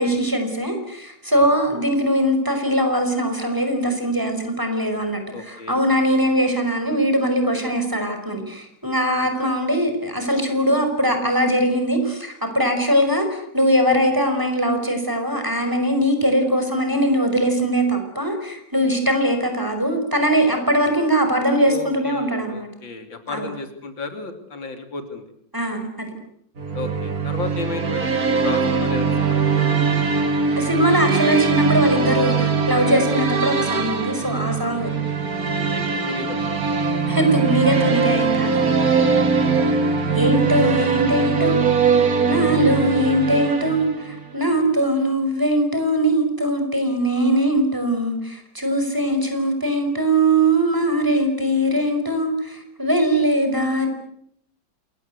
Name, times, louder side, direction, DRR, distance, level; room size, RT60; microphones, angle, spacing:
voice 1, 0.0-22.7 23.3-23.5 25.5-26.1 30.6-34.9 37.1-39.2 40.1-41.6 41.9-42.0 42.2-53.9, right 1 dB, 10° right, 5 dB, 5.3 m, -21 dB
voice 2, 5.3-5.8 9.1-9.3 21.6-25.2 26.7-29.7 35.7-36.8 39.2-39.4, left 3 dB, 75° left, 7 dB, 3.4 m, -34 dB
sound 1, 26.6-44.3, right 5 dB, 50° right, 2.7 m, -21 dB
28.0 x 21.5 x 8.2 m, 0.69 s
omnidirectional pair, 2.1 m